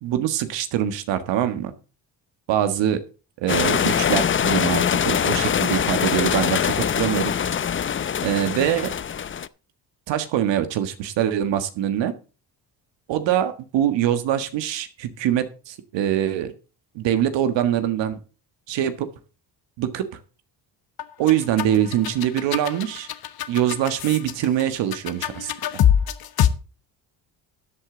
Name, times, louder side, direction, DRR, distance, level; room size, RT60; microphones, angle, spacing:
voice 1, 0.0-1.7 2.5-3.0 3.4-7.3 8.2-8.9 10.1-12.1 13.1-16.5 17.0-18.2 18.7-19.1 19.8-20.1 21.2-23.1 23.5-25.5, right 11 dB, 85° right, 10 dB, 1.6 m, -23 dB
sound 1, 3.5-9.5, left 8 dB, 30° left, 0.6 m, -23 dB
sound 2, 21.0-26.5, left 10 dB, 55° left, 1.2 m, -24 dB
13.5 x 8.4 x 3.8 m, 0.34 s
cardioid pair, 95°, 43 cm